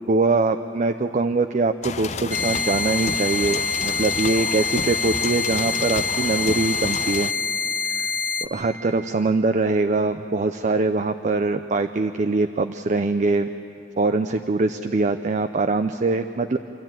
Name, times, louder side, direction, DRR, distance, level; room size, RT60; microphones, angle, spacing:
voice 1, 0.1-7.3 7.9-8.1 8.4-13.5 14.0-16.6, right 3 dB, 45° right, 8 dB, 0.5 m, -23 dB
sound 1, 1.8-7.3, left 5 dB, 40° left, 0.5 m, -31 dB
sound 2, 2.3-8.5, left 4 dB, 10° left, 1.2 m, -26 dB
27.5 x 13.0 x 9.0 m, 3.0 s
head